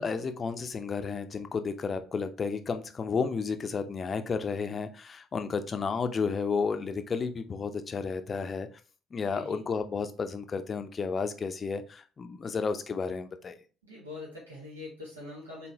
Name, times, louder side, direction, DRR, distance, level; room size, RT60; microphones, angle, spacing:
voice 1, 0.0-8.7 9.1-13.6, left 5 dB, 35° left, 9 dB, 0.6 m, -32 dB
voice 2, 9.2-9.6 13.8-15.7, left 2 dB, 80° right, -5 dB, 1.5 m, -43 dB
4.1 x 3.7 x 2.8 m, 0.37 s
figure-of-eight pair, 50°, 0 cm